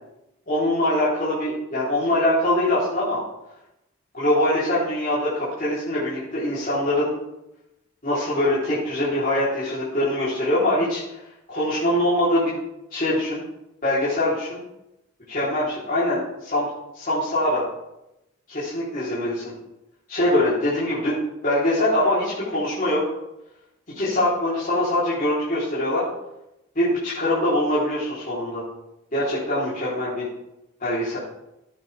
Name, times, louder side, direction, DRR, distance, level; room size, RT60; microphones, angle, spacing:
voice 1, 0.5-3.2 4.1-7.1 8.0-11.2 11.5-12.5 12.9-13.4 13.8-14.6 15.3-16.7 16.9-17.6 18.5-19.5 20.1-21.1 21.4-23.0 23.9-26.0 26.8-28.6 29.1-30.3 30.8-31.2, left 1 dB, 40° left, -10 dB, 3.6 m, -23 dB
14.5 x 8.7 x 3.5 m, 0.90 s
head